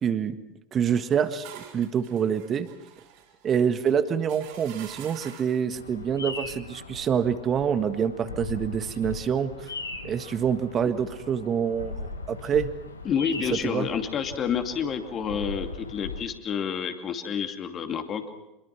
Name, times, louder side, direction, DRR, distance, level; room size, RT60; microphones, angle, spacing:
voice 1, 0.0-0.4 0.7-2.7 3.4-9.7 10.0-12.7 13.5-13.9, right 7 dB, 35° right, 11 dB, 1.6 m, -26 dB
sound 1, 1.0-5.7, right 9 dB, 60° right, 4.5 m, -47 dB
Bird vocalization bird call bird song, 5.7-16.2, left 3 dB, 85° left, 1.8 m, -39 dB
voice 2, 13.0-18.2, left 7 dB, 35° left, 6 dB, 2.6 m, -29 dB
25.5 x 22.5 x 6.0 m, 0.95 s
figure-of-eight pair, 80°, 0 cm